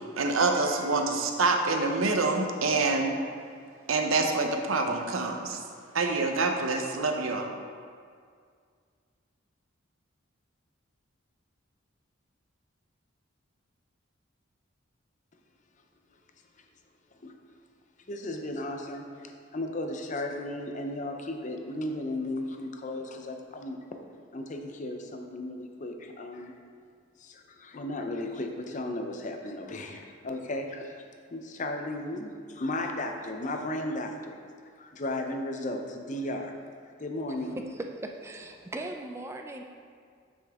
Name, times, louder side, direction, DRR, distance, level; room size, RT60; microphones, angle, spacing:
voice 1, 0.0-3.1 3.9-5.6 5.9-7.5, right 3 dB, 85° right, 4 dB, 0.7 m, -26 dB
voice 2, 18.1-23.8 24.3-26.5 27.2-31.0 31.3-34.4 34.8-36.5 37.0-37.6, left 1 dB, 40° left, 4 dB, 0.6 m, -35 dB
voice 3, 38.0-39.6, right 2 dB, 15° right, 3 dB, 0.3 m, -39 dB
7.1 x 6.1 x 3.5 m, 2.1 s
head